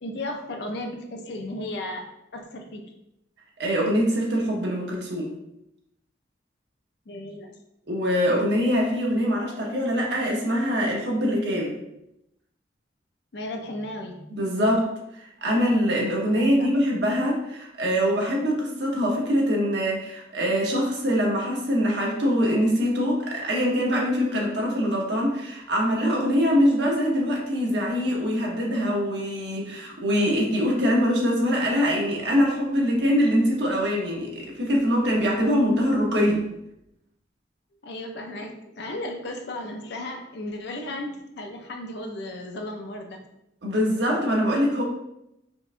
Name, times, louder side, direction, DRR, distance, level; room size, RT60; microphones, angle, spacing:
voice 1, 0.0-2.8 7.1-7.5 13.3-14.2 16.3-16.7 37.8-43.2, left 1 dB, 60° left, 3 dB, 0.5 m, -35 dB
voice 2, 3.6-5.3 7.9-11.7 14.3-36.5 43.6-44.8, equal, 60° right, -2 dB, 0.8 m, -23 dB
4.5 x 2.2 x 2.5 m, 0.84 s
head